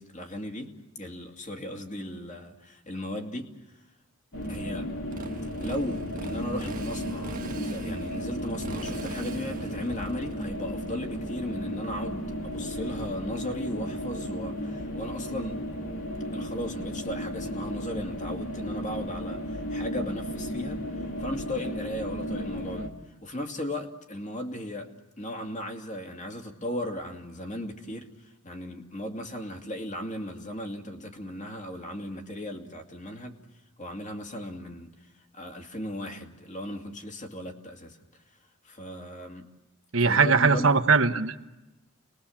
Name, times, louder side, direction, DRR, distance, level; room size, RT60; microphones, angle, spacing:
voice 1, 0.0-3.8 4.5-4.9 5.6-15.6 16.3-24.9 25.2-33.4 33.8-38.0 38.6-39.4 40.0-40.7, left 1 dB, 35° left, 3 dB, 2.6 m, -36 dB
sound 1, 4.3-22.9, equal, 80° left, 2.6 m, -34 dB
Motorcycle, 4.4-13.0, right 1 dB, 40° right, 1.4 m, -40 dB
voice 2, 39.9-41.4, right 4 dB, 70° right, 8 dB, 1.2 m, -21 dB
29.5 x 21.0 x 7.3 m, 1.0 s
head